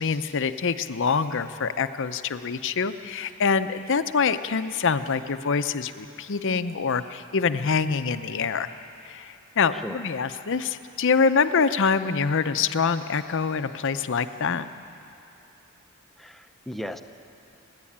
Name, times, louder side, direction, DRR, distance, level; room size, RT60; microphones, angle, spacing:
voice 1, 0.0-8.7 9.0-14.7, left 5 dB, 60° left, 11 dB, 0.7 m, -25 dB
voice 2, 9.7-10.0 16.2-17.0, equal, ahead, 7 dB, 0.7 m, -36 dB
29.5 x 10.5 x 8.7 m, 2.7 s
head